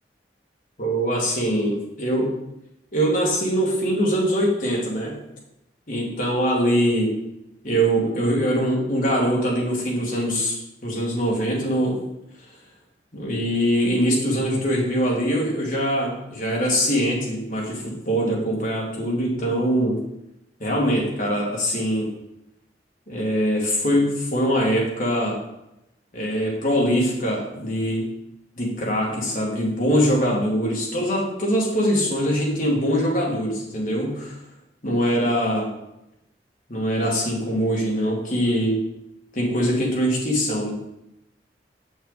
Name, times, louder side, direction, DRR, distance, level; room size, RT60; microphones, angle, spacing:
voice 1, 0.8-2.3 2.9-5.2 5.9-7.1 7.6-12.1 13.1-20.0 20.6-22.1 23.1-25.4 26.1-28.1 28.6-34.4 34.8-35.7 36.7-38.8 39.3-40.7, equal, 50° left, -2 dB, 2.1 m, -23 dB
6.8 x 6.3 x 4.0 m, 0.86 s
head